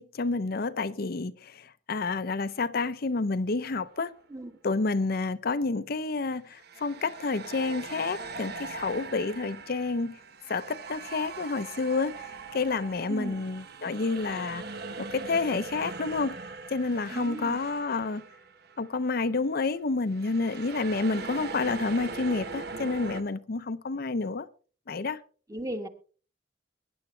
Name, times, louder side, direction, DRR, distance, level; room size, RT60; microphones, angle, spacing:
voice 1, 0.0-4.1 4.6-10.2 10.5-16.4 16.7-18.2 18.8-24.5 24.9-25.2, left 3 dB, 55° left, 0.6 m, -29 dB
sound 1, 3.8-4.1 6.5-18.9 19.1-19.4 20.1-23.2, right 4 dB, 60° right, 1.2 m, -41 dB
voice 2, 13.1-13.4 17.1-17.6 25.5-25.9, right 1 dB, 20° right, 1.4 m, -36 dB
21.5 x 10.5 x 3.3 m
head